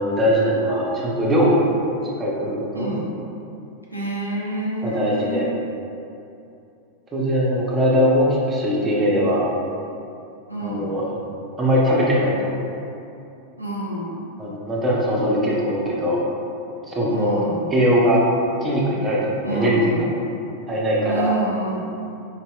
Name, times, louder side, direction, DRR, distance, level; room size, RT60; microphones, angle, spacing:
voice 1, 0.0-1.6 2.2-2.9 4.8-5.5 7.1-9.5 10.6-11.0 11.6-12.6 14.4-16.2 16.8-17.4 17.7-18.2 18.6-20.1 20.7-21.3, equal, 20° right, -5 dB, 0.6 m, -20 dB
voice 2, 2.7-3.2 3.9-5.5 10.5-11.0 13.6-14.2 17.1-17.7 19.4-20.1 21.1-21.9, right 2 dB, 90° left, -6 dB, 0.6 m, -28 dB
3.6 x 2.8 x 2.3 m, 2.7 s
figure-of-eight pair, 90°, 0 cm